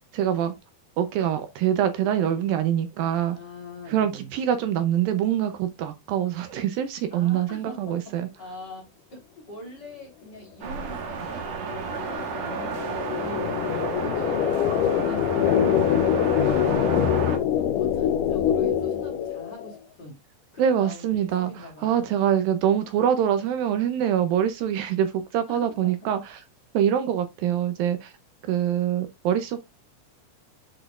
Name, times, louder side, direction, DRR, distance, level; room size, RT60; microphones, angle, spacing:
voice 1, 0.1-0.5 1.0-3.4 3.9-8.3 20.6-26.4 26.7-28.1 28.5-29.6, right 10 dB, 75° right, 2.4 m, -24 dB
voice 2, 3.3-4.3 7.1-8.8 9.1-17.3 17.5-20.1 20.5-22.1 24.8-24.9 25.5-25.9, left 1 dB, 30° left, 3.8 m, -42 dB
sound 1, 10.6-17.4, right 6 dB, 60° right, 2.1 m, -32 dB
sound 2, 10.9-19.7, left 9 dB, 80° left, 2.0 m, -24 dB
7.9 x 6.6 x 2.4 m
omnidirectional pair, 4.4 m